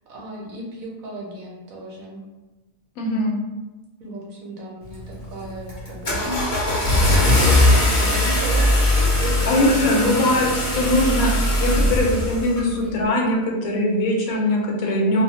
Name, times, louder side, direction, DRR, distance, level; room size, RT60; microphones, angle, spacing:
voice 1, 0.1-2.2 4.0-10.2 12.6-13.0 14.1-15.2, right 1 dB, 75° right, -3 dB, 1.1 m, -34 dB
voice 2, 3.0-3.3 9.5-10.5 10.7-12.7 12.9-15.2, left 1 dB, 80° left, -1 dB, 1.0 m, -21 dB
Car / Engine starting, 4.9-5.2 5.7-12.7, left 1 dB, 35° left, 0.6 m, -20 dB
2.4 x 2.2 x 2.7 m, 1.2 s
omnidirectional pair, 1.5 m